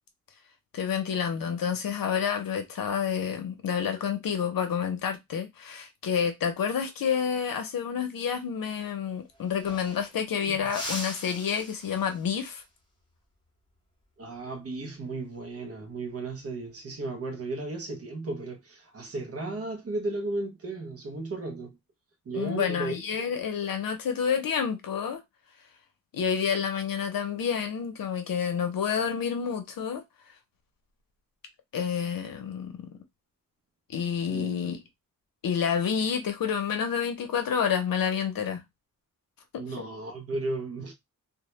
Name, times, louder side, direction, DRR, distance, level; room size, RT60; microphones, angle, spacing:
voice 1, 0.7-12.6 22.3-25.2 26.1-30.0 31.7-32.9 33.9-34.8 35.4-38.6 39.5-39.6, left 7 dB, 75° left, 0.6 m, -29 dB
sound 1, 9.0-9.1 9.3-10.3 10.7-12.4 14.9-15.2 16.6-17.1, left 1 dB, 15° left, 0.8 m, -40 dB
voice 2, 14.2-21.8 22.3-23.3 34.3-34.7 39.6-40.9, right 2 dB, 45° right, 0.5 m, -35 dB
2.1 x 2.1 x 2.9 m
wide cardioid pair, 170°, 34 cm